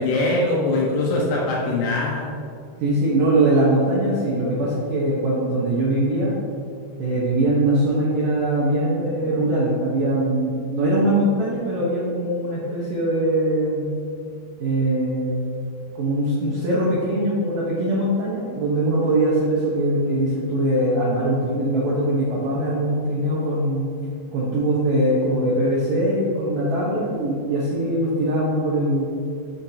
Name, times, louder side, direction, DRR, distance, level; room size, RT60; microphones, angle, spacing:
voice 1, 0.0-2.4, left 2 dB, 75° left, -2 dB, 2.8 m, -22 dB
voice 2, 2.8-6.4 7.0-13.9 14.6-15.3 16.0-23.9 24.3-29.1, right 1 dB, 75° right, -6 dB, 2.0 m, -22 dB
8.8 x 7.3 x 2.8 m, 2.5 s
omnidirectional pair, 5.2 m